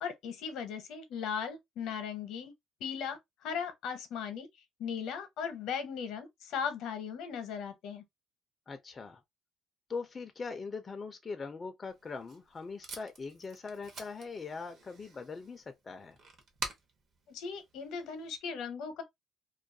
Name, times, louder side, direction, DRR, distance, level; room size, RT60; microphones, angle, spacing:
voice 1, 0.0-2.5 2.8-4.5 4.8-8.0 17.3-19.0, left 7 dB, 75° left, 0.7 m, -38 dB
voice 2, 8.7-9.2 9.9-16.2, left 4 dB, 25° left, 0.3 m, -41 dB
Packing tape duct tape, 11.9-18.4, right 3 dB, 55° right, 0.7 m, -48 dB
2.3 x 2.2 x 2.6 m
cardioid pair, 120°, 0 cm